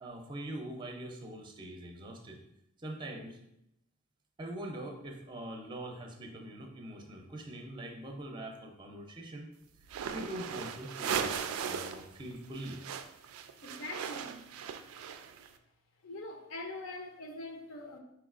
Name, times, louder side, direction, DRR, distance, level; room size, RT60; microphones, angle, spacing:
voice 1, 0.0-2.4 2.8-3.4 4.4-9.5 10.1-11.3 11.6-12.8, right 1 dB, 20° right, 0.5 m, -43 dB
sound 1, 9.8-12.1 12.3-15.5, right 7 dB, 85° right, 0.3 m, -37 dB
voice 2, 13.6-14.4 16.0-18.0, left 2 dB, 75° left, 0.6 m, -43 dB
4.6 x 3.9 x 2.4 m
head